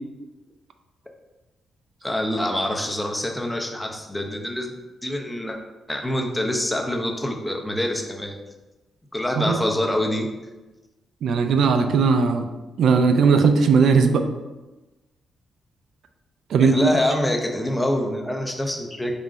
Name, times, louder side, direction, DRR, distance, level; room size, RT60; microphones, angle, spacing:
voice 1, 2.0-4.7 5.0-5.6 5.9-8.4 9.1-10.3 16.6-19.1, left 1 dB, 5° left, 2 dB, 0.4 m, -25 dB
voice 2, 11.2-12.5 12.8-14.2 16.5-16.8, right 5 dB, 65° right, 7 dB, 0.3 m, -18 dB
4.2 x 3.7 x 2.4 m, 1.1 s
wide cardioid pair, 170°, 0 cm